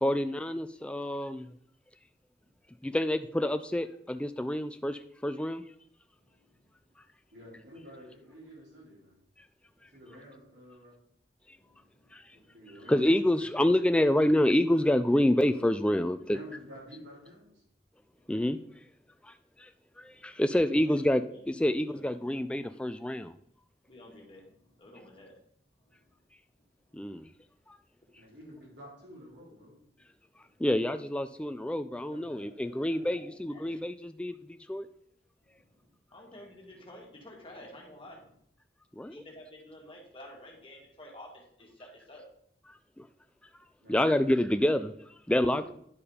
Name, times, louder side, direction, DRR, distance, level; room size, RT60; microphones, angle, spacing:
voice 1, 0.0-1.5 2.8-5.6 12.1-12.2 12.9-16.4 18.3-18.6 19.2-19.7 20.0-23.3 26.9-27.3 27.7-27.8 30.6-34.9 39.0-39.1 43.0-43.1 43.9-44.9 45.3-45.7, left 1 dB, 5° left, 9 dB, 0.3 m, -27 dB
voice 2, 6.2-6.7 9.8-10.0 11.5-12.1 12.5-12.6 18.2-18.4 20.0-20.1 20.6-20.9 21.3-21.5 21.9-22.3 23.9-25.4 25.8-26.2 26.5-27.3 28.0-28.1 28.5-28.6 32.4-32.6 32.9-33.8 35.4-38.4 39.1-42.3, left 1 dB, 30° left, -1 dB, 1.9 m, -52 dB
voice 3, 7.3-9.2 9.9-11.0 12.3-13.1 13.4-13.6 16.3-17.6 28.1-29.8 32.0-33.1 43.8-44.3 45.4-45.6, equal, 85° right, -5 dB, 4.0 m, -50 dB
10.0 x 4.7 x 4.9 m, 0.68 s
head